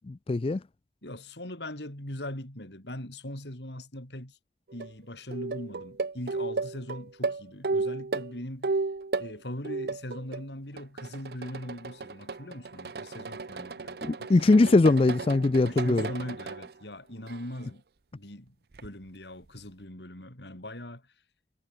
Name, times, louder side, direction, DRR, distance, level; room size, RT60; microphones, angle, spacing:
voice 1, 0.1-0.6 14.0-16.1, left 2 dB, 30° left, 0.4 m, -21 dB
voice 2, 1.0-4.4 4.7-8.7 9.2-14.9 15.6-17.8 18.1-18.5 18.8-21.0, left 1 dB, 75° left, 5.7 m, -40 dB
sound 1, 4.7-4.9 5.3-9.3 9.6-10.4 10.8-16.7 17.3-17.7 18.7-18.9, right 3 dB, 60° right, 0.6 m, -34 dB
head